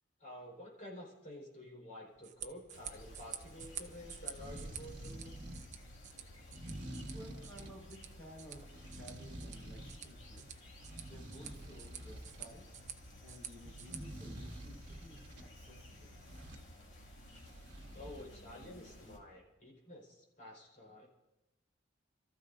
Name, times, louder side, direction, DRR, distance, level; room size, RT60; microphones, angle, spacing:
voice 1, 0.2-5.4 17.9-21.1, left 1 dB, 40° left, -2 dB, 4.8 m, -51 dB
sound 1, 2.1-14.0, right 9 dB, 40° right, 0.8 m, -50 dB
sound 2, 2.7-19.2, left 1 dB, 75° left, 2.4 m, -55 dB
sound 3, 4.1-5.7 6.4-7.8 8.5-10.1 10.4-12.5 13.6-15.5 16.2-16.7 17.2-18.2, right 1 dB, 60° right, 1.5 m, -49 dB
voice 2, 7.1-8.6 8.9-10.5 11.0-12.7 13.2-16.1, equal, 10° left, -3 dB, 5.2 m, -55 dB
29.5 x 14.0 x 2.7 m, 1.0 s
head